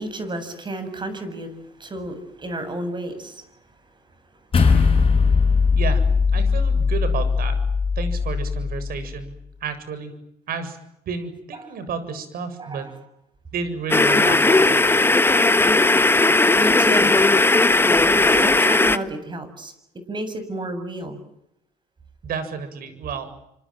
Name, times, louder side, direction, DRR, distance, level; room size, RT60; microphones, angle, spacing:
voice 1, 0.0-1.5 1.8-3.4 11.6-11.7 12.6-12.9 16.6-17.1 18.0-19.7 20.1-21.2, right 1 dB, 25° right, 10 dB, 7.6 m, -31 dB
sound 1, 4.5-9.1, left 5 dB, 30° left, 7.9 m, -19 dB
voice 2, 6.3-7.6 8.0-9.3 9.6-10.2 10.5-10.8 11.1-12.9 13.5-15.0 22.2-23.3, right 5 dB, 60° right, 11 dB, 7.5 m, -31 dB
sound 2, 13.9-19.0, left 2 dB, 15° left, 1.5 m, -17 dB
28.0 x 26.5 x 7.6 m, 0.80 s
cardioid pair, 110°, 17 cm